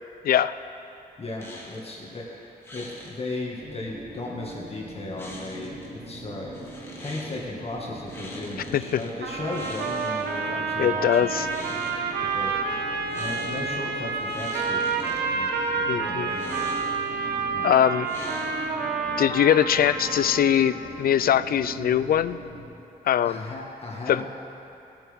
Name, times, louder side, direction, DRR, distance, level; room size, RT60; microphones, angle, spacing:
voice 1, 1.2-6.7 7.0-11.8 12.2-16.7 17.5-17.9 23.2-24.3, left 2 dB, 35° left, -3 dB, 1.8 m, -36 dB
sound 1, 1.4-1.9 2.6-3.1 5.2-5.9 6.5-7.4 8.1-9.1 9.5-10.5 11.3-12.0 13.1-13.7 14.1-15.2 16.3-17.1 18.0-18.8, left 1 dB, 15° left, 2.0 m, -43 dB
sound 2, 3.6-22.6, right 1 dB, 40° right, 3.3 m, -41 dB
sound 3, 9.2-20.9, right 5 dB, 85° right, 1.0 m, -29 dB
voice 2, 10.8-11.5 15.9-16.3 17.6-18.1 19.2-22.4 23.0-23.4 24.1-24.2, left 10 dB, 60° left, 14 dB, 0.4 m, -21 dB
19.0 x 8.9 x 3.6 m, 2.8 s
cardioid pair, 110°, 17 cm